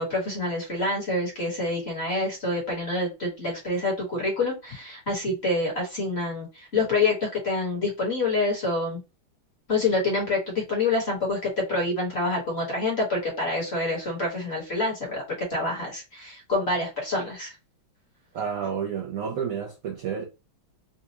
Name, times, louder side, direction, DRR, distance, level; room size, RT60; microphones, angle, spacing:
voice 1, 0.0-9.0 9.7-17.5, left 2 dB, 35° left, 1.4 m, -27 dB
voice 2, 18.3-20.2, right 7 dB, 70° right, 0.8 m, -30 dB
4.2 x 2.3 x 2.8 m
omnidirectional pair, 2.2 m